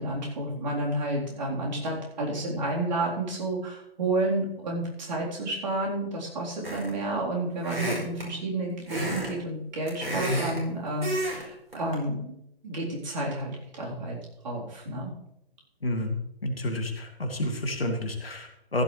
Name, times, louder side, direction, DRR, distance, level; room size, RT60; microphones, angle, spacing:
voice 1, 0.0-12.4 12.6-14.2 14.4-15.1, right 2 dB, 45° right, -3 dB, 3.9 m, -30 dB
sound 1, 6.6-7.0 7.6-8.3 8.9-9.3 9.6-10.6 11.0-11.4 11.7-11.9, equal, 70° right, 4.6 m, -30 dB
voice 2, 15.8-16.2 16.4-18.8, left 1 dB, 70° left, 4 dB, 2.2 m, -30 dB
15.0 x 11.5 x 3.3 m, 0.81 s
figure-of-eight pair, 130°, 30 cm